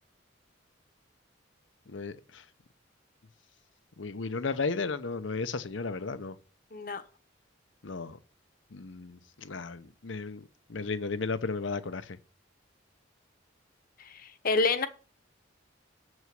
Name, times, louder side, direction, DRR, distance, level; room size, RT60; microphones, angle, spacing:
voice 1, 1.9-2.4 4.0-6.4 7.8-8.2 8.7-12.2, left 4 dB, 75° left, 0.8 m, -34 dB
voice 2, 6.7-7.0 14.0-14.9, left 3 dB, 45° left, 1.0 m, -28 dB
7.6 x 6.4 x 7.7 m
head